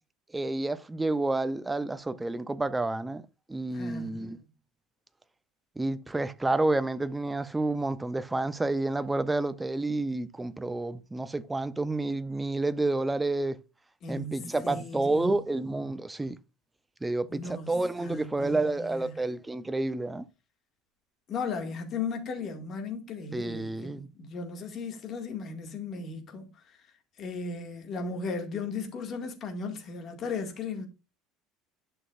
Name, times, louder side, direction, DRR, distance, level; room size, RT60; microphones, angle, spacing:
voice 1, 0.3-3.2 3.5-4.4 5.8-13.6 14.1-16.4 17.0-20.3 23.3-24.1, right 2 dB, 5° right, 0.5 m, -29 dB
voice 2, 3.7-4.3 14.0-15.3 17.3-19.2 21.3-26.8 27.2-30.9, left 4 dB, 30° left, 1.9 m, -36 dB
11.0 x 6.2 x 2.5 m
cardioid pair, 170°, 0 cm